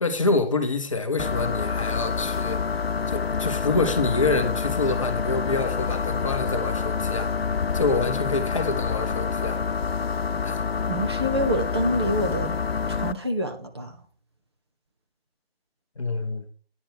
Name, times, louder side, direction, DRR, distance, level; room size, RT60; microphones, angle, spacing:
voice 1, 0.0-7.3 7.7-9.6 10.4-10.7 16.0-16.5, left 3 dB, 30° left, 0.8 m, -27 dB
sound 1, 1.2-13.1, left 5 dB, 75° left, 0.6 m, -27 dB
voice 2, 10.9-12.6 12.9-13.9, equal, 25° right, 0.8 m, -26 dB
9.3 x 6.3 x 4.5 m
figure-of-eight pair, 155°, 31 cm